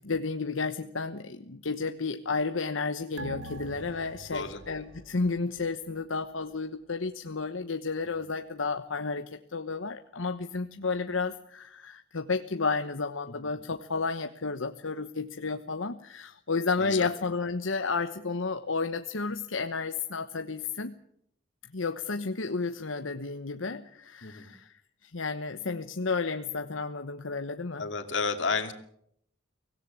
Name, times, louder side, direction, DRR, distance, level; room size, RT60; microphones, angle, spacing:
voice 1, 0.0-21.0 21.7-27.9, left 4 dB, 80° left, 8 dB, 1.1 m, -32 dB
sound 1, 3.2-6.1 6.4-6.5, right 1 dB, 75° right, 2.0 m, -44 dB
voice 2, 16.8-17.1 24.2-24.5 27.8-28.7, left 4 dB, 65° left, 7 dB, 2.7 m, -31 dB
24.5 x 17.0 x 8.6 m, 0.73 s
head